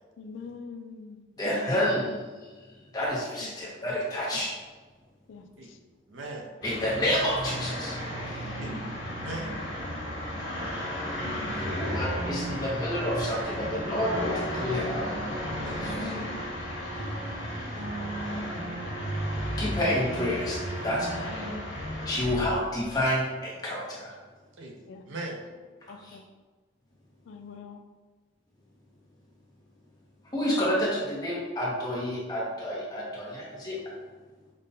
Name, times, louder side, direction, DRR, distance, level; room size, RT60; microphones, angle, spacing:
voice 1, 0.2-1.2 1.5-2.2 3.4-3.5 5.3-5.8 8.4-8.9 11.2-11.7 16.0-16.4 18.3-18.9 21.2-21.6 24.9-25.0 25.9-26.2 27.3-27.8, left 5 dB, 85° left, 0.4 m, -44 dB
voice 2, 1.4-2.5 2.9-4.5 6.6-8.0 8.3-8.5 11.6-15.1 15.7-16.1 19.6-21.1 22.0-24.1 26.0-26.2 30.3-33.8, left 1 dB, 20° left, 0.8 m, -29 dB
voice 3, 6.1-6.5 8.6-9.5 15.6-15.8 24.6-25.5, right 2 dB, 85° right, 0.6 m, -40 dB
sound 1, 6.6-22.4, equal, 70° left, 1.2 m, -34 dB
sound 2, 9.2-13.2 13.6-23.1, right 1 dB, 55° right, 0.9 m, -39 dB
5.2 x 2.2 x 2.7 m
head